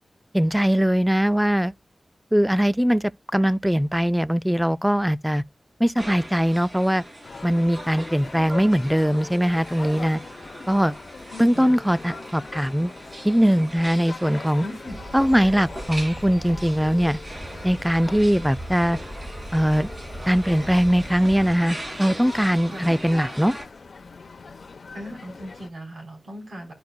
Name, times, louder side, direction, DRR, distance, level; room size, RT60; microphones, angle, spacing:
voice 1, 0.3-1.7 2.3-3.0 3.3-5.4 5.8-7.0 7.4-10.2 10.7-10.9 11.4-12.9 13.2-14.6 15.1-17.2 17.6-19.0 19.5-19.9 20.3-23.5, equal, 5° right, 0.3 m, -21 dB
sound 1, 6.0-23.6, right 1 dB, 40° right, 2.4 m, -40 dB
sound 2, 7.2-25.7, left 4 dB, 70° left, 0.8 m, -42 dB
voice 2, 11.3-11.8 14.6-15.0 22.7-23.0 24.9-26.7, equal, 85° right, 3.8 m, -38 dB
sound 3, 14.9-21.6, right 1 dB, 20° right, 3.1 m, -39 dB
13.0 x 4.6 x 2.2 m
cardioid pair, 45°, 0 cm